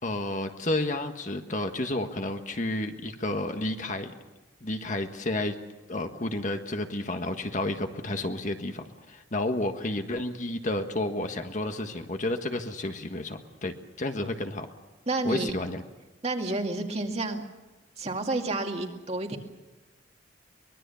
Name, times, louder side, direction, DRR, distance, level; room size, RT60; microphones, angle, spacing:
voice 1, 0.0-4.1 4.6-5.5 5.9-14.7 15.2-15.8, left 1 dB, 40° left, 6 dB, 1.6 m, -31 dB
voice 2, 15.1-15.5 16.2-17.4 18.0-19.4, right 2 dB, 35° right, 3 dB, 2.2 m, -30 dB
23.5 x 21.5 x 7.1 m, 1.1 s
head